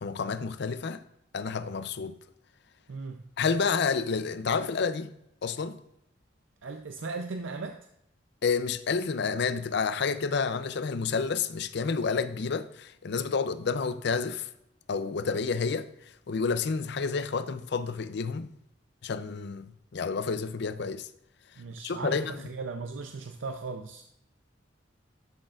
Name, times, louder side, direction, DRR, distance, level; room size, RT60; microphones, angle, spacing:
voice 1, 0.0-1.0 1.3-2.1 3.4-5.1 5.4-5.8 8.4-14.5 14.9-15.9 16.3-18.5 19.0-21.1 21.8-22.4, left 5 dB, 65° left, 0.5 m, -29 dB
voice 2, 2.9-3.2 6.6-7.9 21.6-24.0, right 4 dB, 85° right, 0.5 m, -37 dB
11.5 x 6.5 x 2.4 m
head